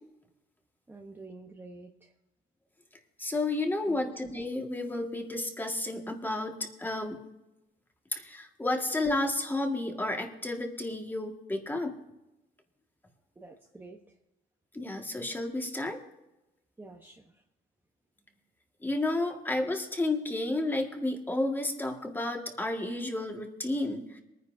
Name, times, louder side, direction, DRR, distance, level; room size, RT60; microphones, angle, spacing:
voice 1, 0.9-2.1 3.8-4.1 13.4-14.0 16.8-17.3, right 3 dB, 10° right, 1 dB, 1.0 m, -48 dB
voice 2, 3.2-7.2 8.1-12.0 14.7-16.0 18.8-24.2, left 2 dB, 10° left, 3 dB, 1.8 m, -31 dB
23.0 x 9.8 x 2.7 m, 0.95 s
cardioid pair, 110°, 17 cm